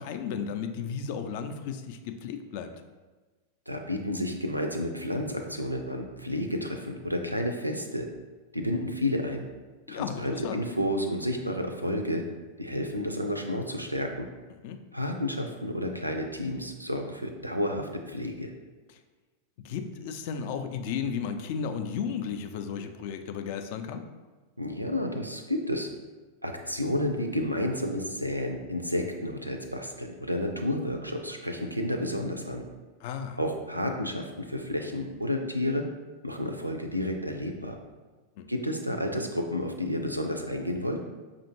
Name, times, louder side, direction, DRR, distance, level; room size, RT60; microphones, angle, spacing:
voice 1, 0.0-2.7 9.9-10.6 14.5-14.8 18.9-19.0 19.6-24.0 33.0-33.4 38.4-38.5, left 7 dB, 50° left, 7 dB, 0.3 m, -34 dB
voice 2, 3.7-8.1 8.5-9.5 9.9-12.2 12.6-14.3 14.9-18.5 24.6-25.9 26.4-32.6 33.4-35.8 36.2-37.8 38.5-41.0, left 1 dB, 90° right, 4 dB, 0.4 m, -31 dB
5.2 x 2.5 x 2.9 m, 1.3 s
figure-of-eight pair, 90°, 0 cm